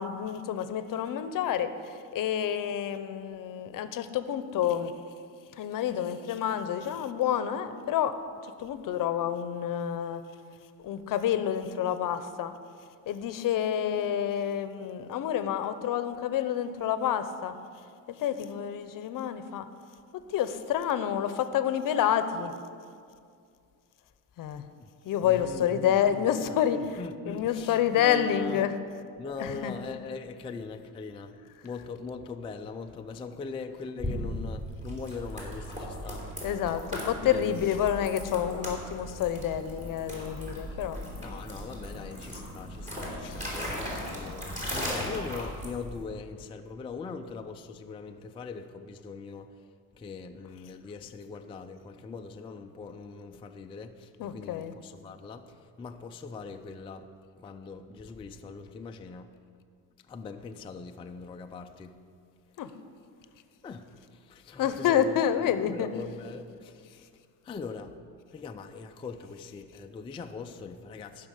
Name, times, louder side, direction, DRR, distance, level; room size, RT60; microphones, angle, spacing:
voice 1, 0.0-1.7 2.1-4.9 5.6-8.1 8.6-10.2 10.8-12.5 13.1-17.5 18.1-19.7 20.3-22.5 24.4-24.6 25.0-28.7 29.4-29.7 36.4-41.0 43.2-43.4 54.2-54.7 62.6-62.7 64.6-65.9, left 9 dB, 55° left, 0.7 m, -28 dB
voice 2, 25.2-28.7 29.2-31.4 31.6-36.3 37.2-37.8 41.2-49.6 50.0-57.1 57.4-59.3 60.1-62.0 63.6-67.1 67.4-67.9 68.3-71.3, left 4 dB, 15° left, 0.3 m, -41 dB
sound 1, 34.0-46.0, equal, 20° right, 3.2 m, -37 dB
14.5 x 6.1 x 6.5 m
cardioid pair, 130°, 40 cm